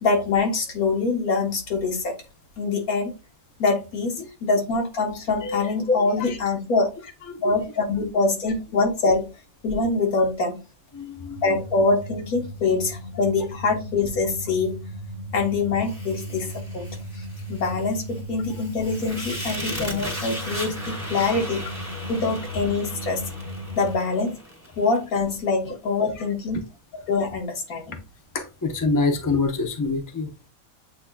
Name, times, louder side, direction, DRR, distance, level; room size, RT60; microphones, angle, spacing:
voice 1, 0.0-2.1 2.6-3.1 3.6-7.0 7.4-9.3 9.6-10.6 11.4-14.8 15.3-16.9 17.5-21.7 22.1-23.2 23.7-24.4 24.8-26.6 27.1-28.0, left 3 dB, 80° left, 1.6 m, -24 dB
voice 2, 7.3-7.7 10.9-11.4 26.2-26.3 27.9-28.0 28.3-30.5, left 3 dB, 20° left, 0.5 m, -26 dB
sound 1, 11.3-24.0, equal, 45° right, 0.6 m, -36 dB
Fire, 15.8-25.0, equal, 10° right, 2.0 m, -37 dB
8.3 x 2.8 x 2.2 m
omnidirectional pair, 1.5 m